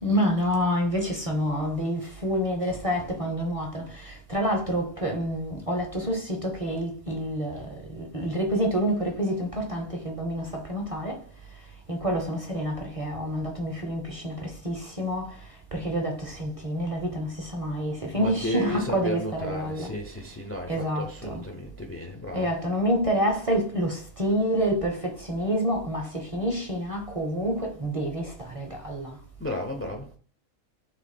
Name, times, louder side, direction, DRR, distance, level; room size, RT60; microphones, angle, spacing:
voice 1, 0.0-19.9 20.7-21.4 22.3-29.2, equal, 35° right, 0.6 m, -28 dB
voice 2, 18.1-22.5 29.4-30.1, left 1 dB, 20° left, 0.3 m, -33 dB
3.8 x 2.9 x 4.2 m
omnidirectional pair, 1.4 m